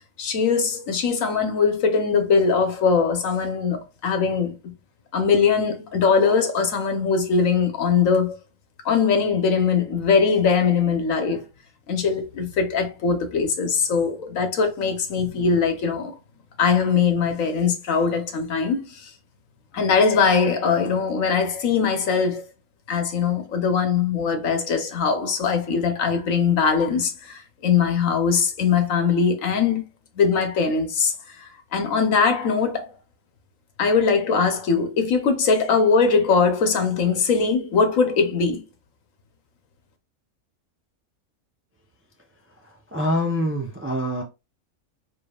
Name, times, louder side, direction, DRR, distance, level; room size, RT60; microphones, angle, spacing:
voice 1, 0.2-4.7 5.1-8.4 8.8-11.4 11.9-16.1 16.6-19.1 19.7-22.4 22.9-29.8 30.2-32.9 33.8-38.6, left 5 dB, 65° left, 1.3 m, -21 dB
voice 2, 42.9-44.2, equal, 15° right, 0.4 m, -24 dB
5.1 x 3.9 x 2.3 m
omnidirectional pair, 1.5 m